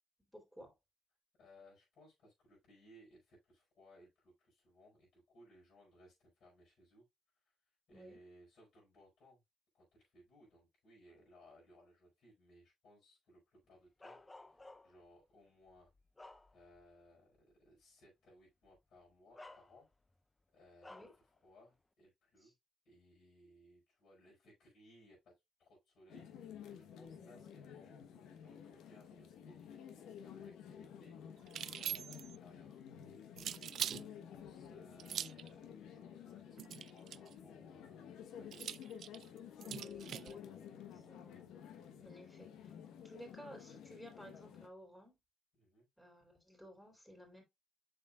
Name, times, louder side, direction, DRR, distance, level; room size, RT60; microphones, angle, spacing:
voice 1, 0.3-0.7 7.9-8.2 20.9-21.1 22.4-22.5 27.2-27.4 39.6-40.5 40.9-41.5 42.0-45.2 46.0-47.4, equal, 5° left, 3.4 m, -56 dB
voice 2, 1.4-7.1 7.3-7.6 7.9-9.4 9.7-15.9 16.5-19.9 20.5-22.5 22.8-25.3 25.6-32.8 33.3-38.7 45.5-45.9, equal, 65° left, 4.8 m, -64 dB
Bark, 14.0-15.1 15.7-16.9 17.4-17.5 18.6-18.8 19.3-20.1 20.8-21.2, left 2 dB, 20° left, 0.6 m, -56 dB
sound 1, 26.1-44.7, left 8 dB, 85° left, 1.1 m, -52 dB
sound 2, 31.5-32.4 33.4-34.0 35.0-35.5 36.6-37.3 38.5-40.3, right 10 dB, 70° right, 0.3 m, -42 dB
7.4 x 6.6 x 2.4 m
cardioid pair, 90°, 0 cm